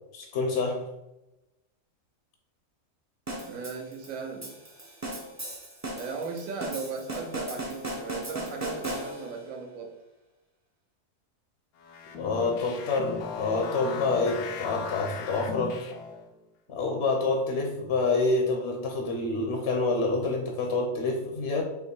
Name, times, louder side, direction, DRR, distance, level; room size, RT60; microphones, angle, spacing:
voice 1, 0.1-0.8 12.2-15.8 16.7-21.6, left 3 dB, 60° left, 2 dB, 0.8 m, -27 dB
sound 1, 3.3-9.5, right 1 dB, 25° right, 0.4 m, -37 dB
voice 2, 3.4-4.6 6.0-9.9 16.7-17.0, right 4 dB, 75° right, 3 dB, 1.1 m, -37 dB
sound 2, 11.8-16.3, left 5 dB, 90° left, 1.1 m, -37 dB
3.5 x 2.9 x 4.3 m, 0.96 s
omnidirectional pair, 1.5 m